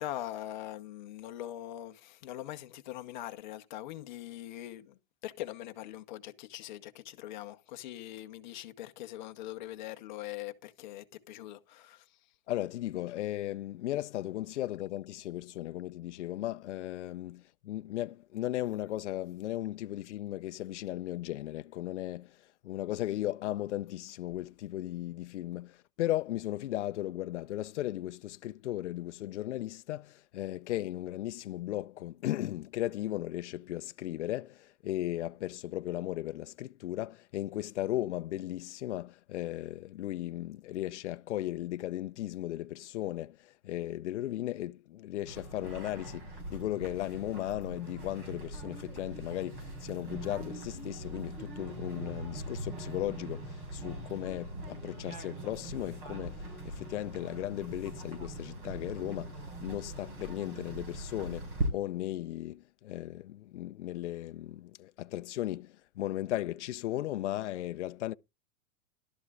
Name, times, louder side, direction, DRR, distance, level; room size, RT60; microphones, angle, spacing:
voice 1, 0.0-12.2, left 13 dB, 35° left, 1.0 m, -42 dB
voice 2, 12.5-22.4 22.6-68.1, left 14 dB, 55° left, 0.6 m, -36 dB
sound 1, 45.3-61.7, right 1 dB, 40° right, 5.6 m, -41 dB
14.5 x 12.5 x 2.5 m
hypercardioid pair, 170°, 42 cm